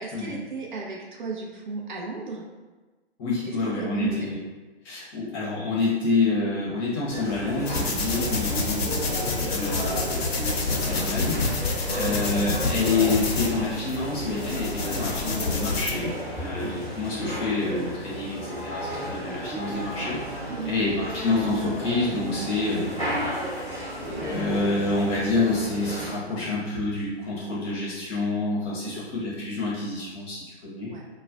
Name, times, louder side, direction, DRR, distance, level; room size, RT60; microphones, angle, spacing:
voice 1, 0.0-2.5 3.5-4.4 9.4-9.7 11.9-12.2 16.6-16.8 20.5-20.8 28.8-29.0 30.9-31.0, right 4 dB, 50° right, -2 dB, 0.5 m, -35 dB
voice 2, 3.2-4.4 4.8-9.7 10.0-10.4 10.7-22.9 24.2-30.9, left 3 dB, 25° left, -7 dB, 0.7 m, -28 dB
sound 1, 7.1-26.1, equal, 10° right, 0.9 m, -33 dB
sound 2, 7.7-15.9, left 3 dB, 70° left, 0.6 m, -28 dB
2.3 x 2.1 x 3.6 m, 1.3 s
figure-of-eight pair, 125°, 32 cm